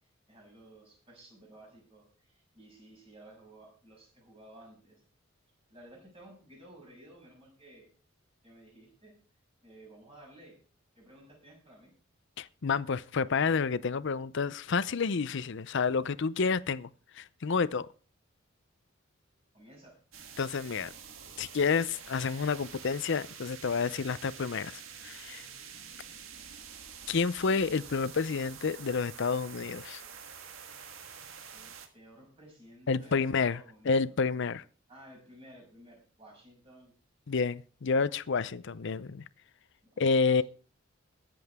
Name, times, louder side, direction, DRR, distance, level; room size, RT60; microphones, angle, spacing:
voice 1, 0.3-5.0 5.7-7.9 8.4-9.1 9.6-10.6 10.9-11.9 19.5-20.0 31.5-34.2 34.9-36.9 39.8-40.4, right 1 dB, 30° right, 6.6 m, -55 dB
voice 2, 12.4-16.9 17.1-17.9 20.4-20.9 21.4-25.5 27.1-30.0 32.9-34.6 37.3-39.2 40.0-40.4, left 5 dB, 65° left, 0.6 m, -29 dB
sound 1, 20.1-31.9, right 7 dB, 85° right, 1.7 m, -47 dB
21.5 x 7.7 x 3.6 m
head